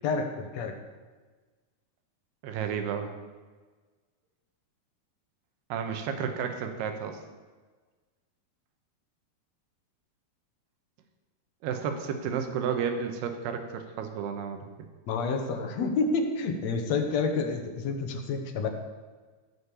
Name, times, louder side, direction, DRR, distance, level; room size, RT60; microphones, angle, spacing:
voice 1, 0.0-0.7 15.1-18.7, left 4 dB, 65° left, 4 dB, 1.7 m, -29 dB
voice 2, 2.4-3.1 5.7-7.2 11.6-14.6, right 7 dB, 90° right, 6 dB, 3.2 m, -32 dB
16.5 x 6.6 x 7.0 m, 1.4 s
omnidirectional pair, 4.6 m